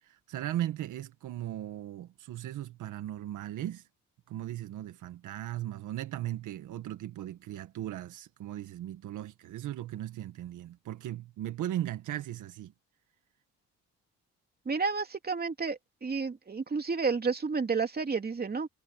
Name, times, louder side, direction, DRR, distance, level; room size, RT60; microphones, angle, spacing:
voice 1, 0.0-3.8 4.3-12.7, right 13 dB, 80° right, 1.6 m, -37 dB
voice 2, 14.6-18.7, right 4 dB, 30° right, 3.0 m, -31 dB
cardioid pair, 90°, 30 cm